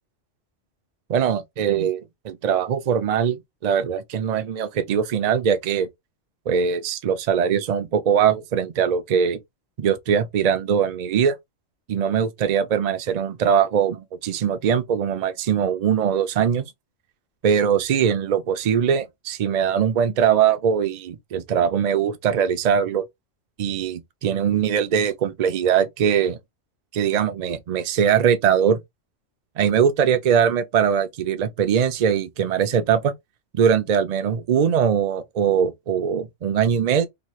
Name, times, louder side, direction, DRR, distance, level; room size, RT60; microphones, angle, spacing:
voice 1, 1.1-5.9 6.5-9.4 9.8-11.4 11.9-16.7 17.4-23.0 23.6-26.4 26.9-28.8 29.6-33.1 33.5-37.1, right 8 dB, 55° right, 0.4 m, -21 dB
3.0 x 2.3 x 3.0 m
omnidirectional pair, 1.3 m